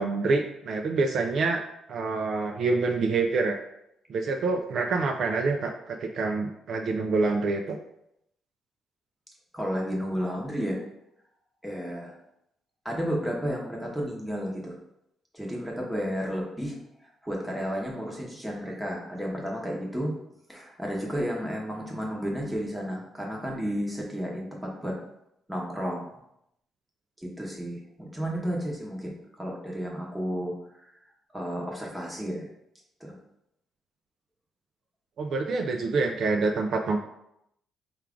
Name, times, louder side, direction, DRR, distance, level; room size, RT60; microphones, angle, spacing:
voice 1, 0.0-1.6 1.9-3.6 4.1-7.8 35.2-37.0, right 3 dB, 55° right, 3 dB, 0.4 m, -26 dB
voice 2, 9.5-10.8 11.6-12.1 12.8-14.8 15.3-16.8 17.2-20.1 20.5-25.0 25.5-26.1 27.2-30.9 31.3-32.5 33.0-33.2, equal, 5° right, -2 dB, 0.9 m, -32 dB
4.5 x 2.4 x 3.6 m, 0.80 s
cardioid pair, 130°, 0 cm